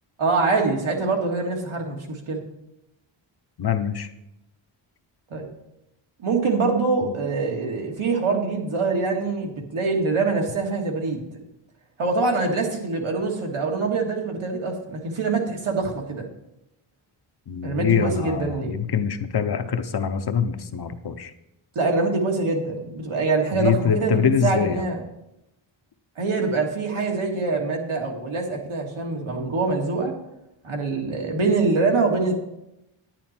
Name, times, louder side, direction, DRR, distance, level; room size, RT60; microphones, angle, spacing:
voice 1, 0.2-2.4 5.3-5.5 6.2-11.3 12.0-16.3 17.6-18.7 21.8-25.0 26.2-30.2 30.6-32.3, right 3 dB, 80° right, 1 dB, 2.1 m, -24 dB
voice 2, 3.6-4.1 7.0-7.1 17.5-21.3 23.5-24.8, left 7 dB, 50° left, 9 dB, 0.8 m, -24 dB
10.0 x 9.2 x 4.4 m, 0.86 s
wide cardioid pair, 155°, 49 cm